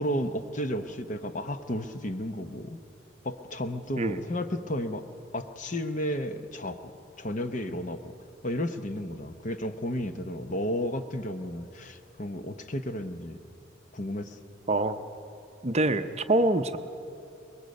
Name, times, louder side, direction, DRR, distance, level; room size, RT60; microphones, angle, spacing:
voice 1, 0.0-2.8 3.2-5.0 5.3-6.9 7.2-8.1 8.4-13.4 13.9-14.4, equal, 40° left, 8 dB, 0.8 m, -33 dB
voice 2, 15.6-16.8, right 2 dB, 30° right, 9 dB, 0.6 m, -25 dB
24.5 x 21.0 x 5.3 m, 2.7 s
head